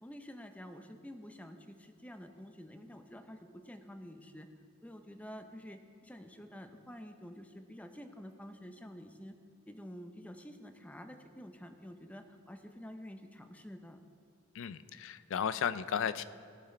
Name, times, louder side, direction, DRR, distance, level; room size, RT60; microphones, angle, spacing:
voice 1, 0.0-4.5 4.8-9.4 9.7-14.0, equal, 5° left, 7 dB, 0.6 m, -49 dB
voice 2, 14.5-16.2, left 7 dB, 65° left, 15 dB, 0.4 m, -34 dB
17.5 x 5.9 x 4.3 m, 2.5 s
head